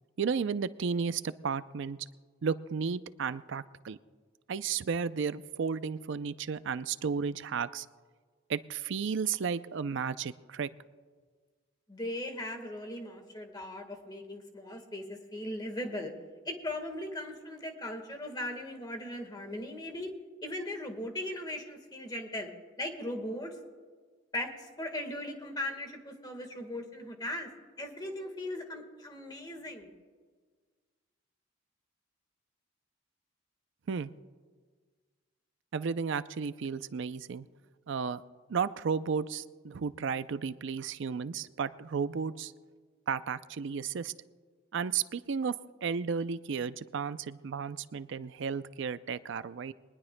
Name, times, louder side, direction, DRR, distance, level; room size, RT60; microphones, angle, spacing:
voice 1, 0.2-2.0 2.4-4.0 4.5-7.9 8.5-10.7 33.9-34.1 35.7-37.5 37.9-38.2 38.5-42.5 43.1-44.1 44.7-45.5 45.8-49.7, right 6 dB, 65° right, 14 dB, 0.4 m, -33 dB
voice 2, 11.9-16.1 16.4-20.1 20.4-22.5 22.8-23.6 24.3-27.5 27.8-29.9, left 1 dB, 20° left, 5 dB, 1.5 m, -38 dB
22.0 x 20.0 x 2.2 m, 1.5 s
head